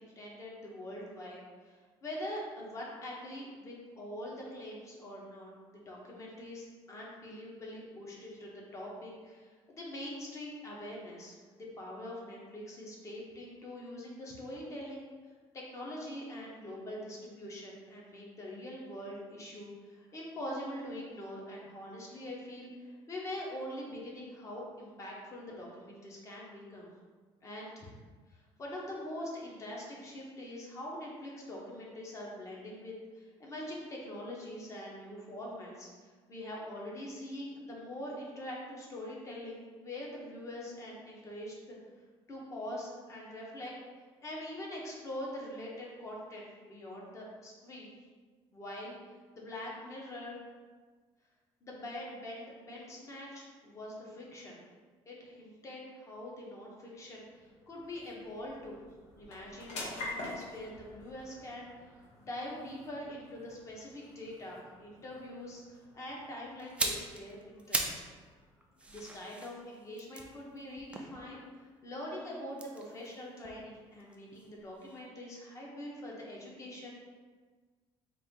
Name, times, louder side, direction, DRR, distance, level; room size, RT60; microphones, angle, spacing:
voice 1, 0.0-15.1 15.5-26.9 27.4-27.9 28.3-35.9 36.3-41.8 42.3-43.7 44.2-47.9 48.5-48.9 49.3-50.4 51.6-54.6 55.1-58.8 59.2-61.9 62.2-68.0 68.9-76.9, left 1 dB, 30° left, -3 dB, 1.0 m, -44 dB
sound 1, 56.4-71.2, left 2 dB, 80° left, 1.2 m, -49 dB
sound 2, 66.6-68.1 68.4-71.7 72.5-74.5 74.8-75.0, right 2 dB, 10° right, 0.4 m, -39 dB
4.3 x 2.6 x 3.7 m, 1.5 s
cardioid pair, 145°, 10 cm